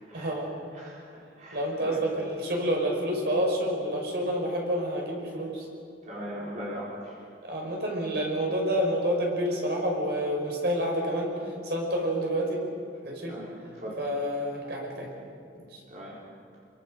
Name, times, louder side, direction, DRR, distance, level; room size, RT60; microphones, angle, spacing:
voice 1, 0.1-0.5 1.5-5.7 7.4-12.7 13.0-13.4 14.0-15.1 15.6-15.8, equal, 65° right, 0 dB, 5.6 m, -29 dB
voice 2, 0.7-2.0 6.1-7.1 13.3-13.5 13.8-14.0 15.9-16.2, equal, 45° right, -5 dB, 4.1 m, -39 dB
28.0 x 23.5 x 6.6 m, 2.4 s
head